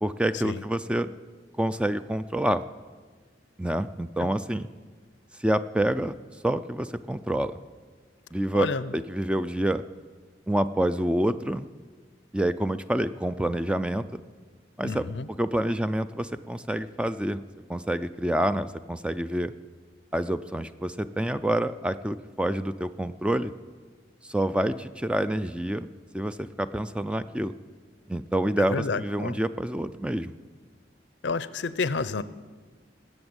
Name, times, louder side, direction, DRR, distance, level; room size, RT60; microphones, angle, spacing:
voice 1, 0.0-1.1 1.6-2.6 3.6-4.7 5.4-6.2 6.4-7.6 8.3-9.8 10.5-11.7 12.3-14.2 14.8-15.1 15.4-17.4 17.7-19.5 20.1-23.5 24.2-27.5 28.1-30.3, right 1 dB, 5° right, 12 dB, 0.3 m, -27 dB
voice 2, 14.8-15.3 28.6-29.4 31.2-32.2, left 4 dB, 75° left, 16 dB, 0.6 m, -29 dB
19.5 x 8.0 x 8.0 m, 1.5 s
head